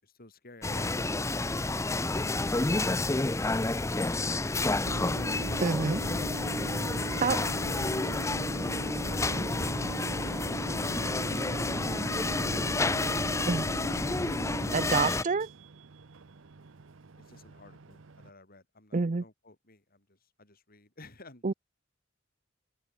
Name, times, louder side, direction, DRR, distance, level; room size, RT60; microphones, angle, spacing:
voice 1, 0.0-4.5 6.5-7.3 11.0-13.6 17.1-21.5, left 2 dB, 50° left, 5.3 m, -55 dB
sound 1, 0.6-15.2, left 2 dB, 15° left, 0.6 m, -30 dB
Microwave oven, 4.8-18.3, right 3 dB, 80° right, 0.8 m, -42 dB
voice 2, 5.6-6.0 7.2-7.4 13.5-13.6 14.7-15.5 18.9-19.2 21.4-21.5, right 4 dB, 40° right, 0.6 m, -27 dB
head